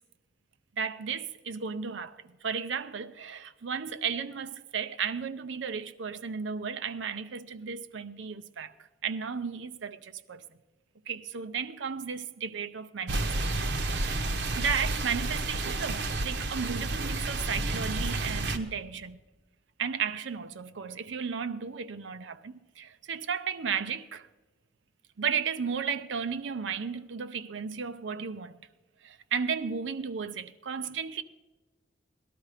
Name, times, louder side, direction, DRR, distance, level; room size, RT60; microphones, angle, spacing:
voice 1, 0.8-8.7 9.0-10.4 11.1-13.7 14.0-19.2 19.8-24.3 25.2-28.6 29.0-31.2, right 6 dB, 85° right, 0.6 m, -34 dB
sound 1, 13.1-18.6, right 2 dB, 65° right, 0.9 m, -30 dB
18.0 x 12.0 x 4.9 m
head